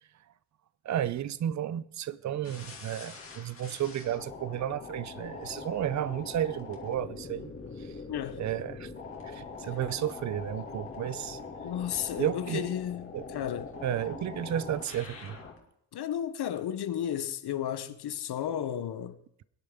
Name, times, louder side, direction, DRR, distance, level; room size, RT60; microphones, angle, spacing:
voice 1, 0.8-7.5 7.8-7.9 8.4-8.9 9.2-11.4 12.2-12.8 13.1-13.3 13.8-15.4, right 11 dB, 40° right, 0.5 m, -33 dB
sound 1, 2.4-15.6, left 4 dB, 30° left, 2.5 m, -43 dB
voice 2, 8.1-8.4 11.6-13.7 15.9-19.2, left 10 dB, 60° left, 0.9 m, -33 dB
23.5 x 10.5 x 3.7 m
cardioid pair, 155°, 44 cm